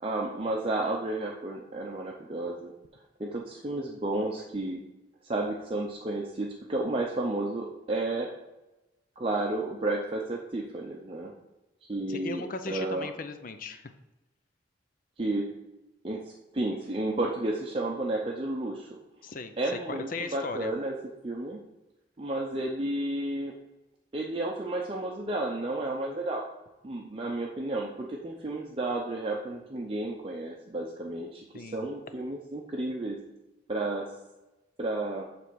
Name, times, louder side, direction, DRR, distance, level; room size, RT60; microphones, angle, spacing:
voice 1, 0.0-2.7 3.2-4.8 5.3-8.3 9.2-11.3 11.9-13.1 15.2-15.5 16.0-16.2 16.5-19.0 19.6-20.9 21.2-21.6 22.2-23.5 24.1-26.4 26.8-33.2 33.7-34.1 34.8-35.2, right 2 dB, 30° right, -1 dB, 0.6 m, -32 dB
voice 2, 12.1-13.9 19.2-20.7 31.5-31.9, left 3 dB, 45° left, 9 dB, 0.6 m, -37 dB
7.4 x 3.4 x 6.2 m, 0.99 s
head